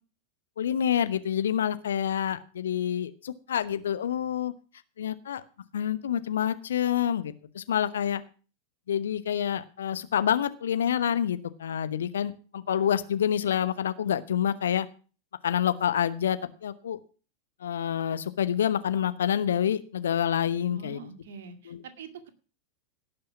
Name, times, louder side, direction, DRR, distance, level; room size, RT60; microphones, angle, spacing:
voice 1, 0.6-4.5 5.0-5.4 5.7-8.2 8.9-14.9 15.4-17.0 17.6-21.1 21.7-21.8, left 9 dB, 65° left, 13 dB, 1.0 m, -27 dB
voice 2, 20.7-22.3, right 5 dB, 60° right, 8 dB, 2.1 m, -44 dB
17.5 x 6.8 x 5.9 m, 0.37 s
figure-of-eight pair, 90°, 0 cm